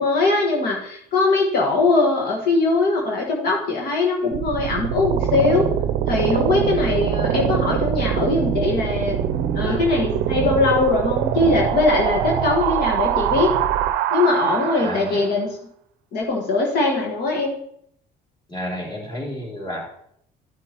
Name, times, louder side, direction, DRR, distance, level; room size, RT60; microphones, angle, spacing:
voice 1, 0.0-5.7 6.1-9.2 9.5-13.6 14.1-15.5 16.1-17.5, left 3 dB, 65° left, -1 dB, 1.5 m, -21 dB
sound 1, 4.3-15.3, right 9 dB, 85° right, 0.5 m, -23 dB
voice 2, 14.7-15.2 18.5-19.8, equal, 25° left, -4 dB, 3.3 m, -31 dB
13.0 x 6.1 x 2.9 m, 0.70 s
cardioid pair, 110°, 17 cm